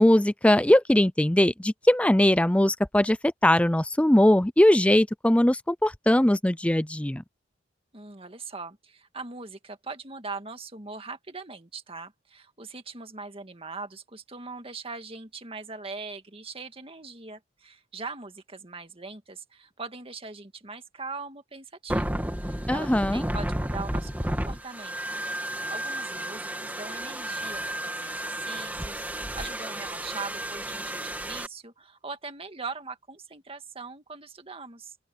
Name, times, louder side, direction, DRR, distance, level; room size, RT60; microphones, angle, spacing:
voice 1, 0.0-3.2 3.4-7.2 22.7-23.2, left 1 dB, 5° left, 0.5 m, -20 dB
voice 2, 7.9-35.0, right 4 dB, 30° right, 1.9 m, -41 dB
sound 1, 21.9-31.5, right 1 dB, 10° right, 2.2 m, -32 dB
open air
head